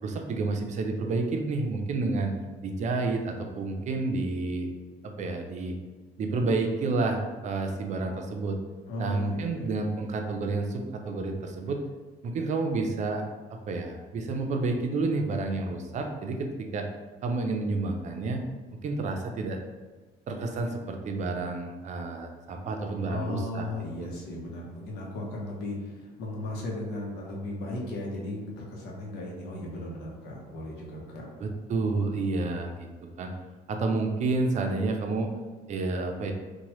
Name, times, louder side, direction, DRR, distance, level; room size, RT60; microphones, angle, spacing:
voice 1, 0.0-2.3 2.6-4.7 5.0-5.7 6.2-8.6 9.0-11.8 12.2-13.2 13.7-16.9 17.2-18.4 18.8-19.6 20.3-23.7 24.0-24.1 31.4-32.9 33.2-33.3 33.7-35.3 35.7-36.3, right 3 dB, 45° right, 3 dB, 0.4 m, -30 dB
voice 2, 8.9-9.7 23.1-31.2, left 1 dB, 85° left, -2 dB, 0.8 m, -36 dB
2.9 x 2.2 x 3.0 m, 1.3 s
cardioid pair, 110°, 17 cm